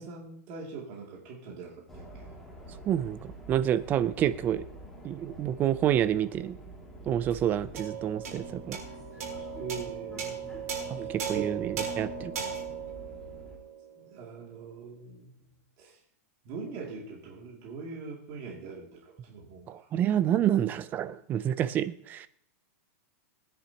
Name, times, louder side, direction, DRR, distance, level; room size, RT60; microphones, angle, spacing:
voice 1, 0.0-2.3 9.6-11.5 14.0-16.0 16.4-19.9, right 5 dB, 40° right, -2 dB, 2.6 m, -42 dB
sound 1, 1.9-13.6, right 1 dB, ahead, 2.3 m, -47 dB
voice 2, 2.8-4.6 5.0-6.6 7.1-8.8 10.9-12.3 19.7-22.3, right 10 dB, 20° right, 15 dB, 0.4 m, -28 dB
sound 2, 7.7-14.4, right 6 dB, 85° right, 4.0 m, -37 dB
20.0 x 10.0 x 2.9 m, 0.67 s
supercardioid pair, 160°, 8 cm